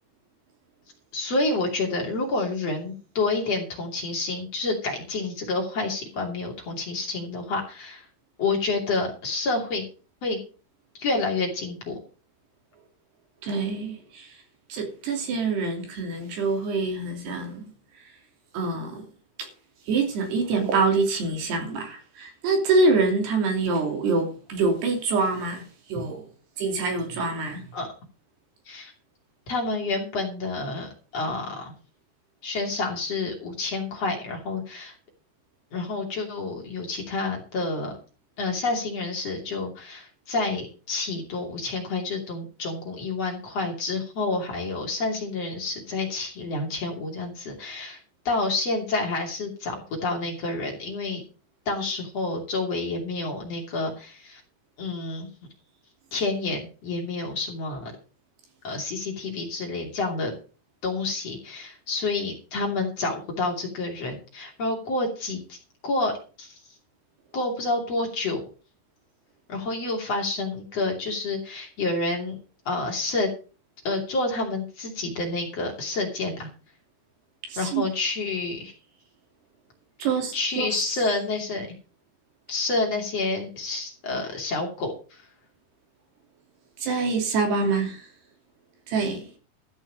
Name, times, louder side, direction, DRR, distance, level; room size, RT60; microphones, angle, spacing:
voice 1, 1.1-8.1 8.4-9.9 10.2-10.4 11.0-12.0 27.7-27.9 28.7-28.9 29.5-31.7 32.4-34.9 35.7-37.9 38.4-48.0 48.3-51.2 51.7-54.4 54.8-55.3 56.1-57.9 58.6-60.3 60.8-65.6 65.8-66.1 66.4-66.6 67.3-68.4 69.5-72.4 72.7-73.3 73.9-76.5 77.6-78.7 80.3-81.7 82.5-85.2, left 3 dB, 40° left, 3.3 m, -29 dB
voice 2, 13.4-14.4 14.7-17.7 18.5-19.0 19.4-19.5 19.9-26.2 26.6-27.7 77.5-77.9 80.0-80.7 86.8-88.1 88.9-89.3, right 3 dB, 65° right, 4.8 m, -25 dB
14.0 x 6.3 x 6.4 m
omnidirectional pair, 5.2 m